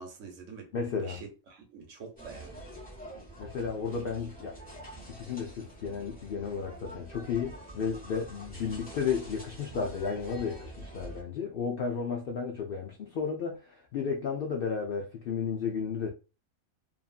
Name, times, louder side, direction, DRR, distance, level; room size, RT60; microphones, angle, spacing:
voice 1, 0.0-2.7, right 5 dB, 70° right, 1.1 m, -46 dB
voice 2, 0.7-1.2 3.4-4.6 5.1-16.1, left 6 dB, 70° left, 0.5 m, -33 dB
sound 1, 2.2-11.2, right 1 dB, 5° left, 1.0 m, -46 dB
2.7 x 2.4 x 2.3 m
omnidirectional pair, 1.4 m